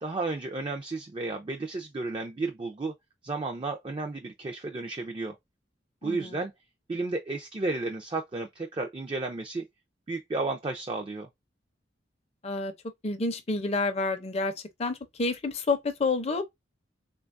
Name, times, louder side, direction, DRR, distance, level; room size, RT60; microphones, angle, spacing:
voice 1, 0.0-2.9 3.2-5.4 6.0-6.5 6.9-9.6 10.1-11.3, right 3 dB, 25° right, 0.4 m, -32 dB
voice 2, 6.0-6.4 12.4-12.7 13.0-14.5 14.8-16.4, left 3 dB, 35° left, 0.5 m, -29 dB
3.8 x 2.3 x 2.5 m
head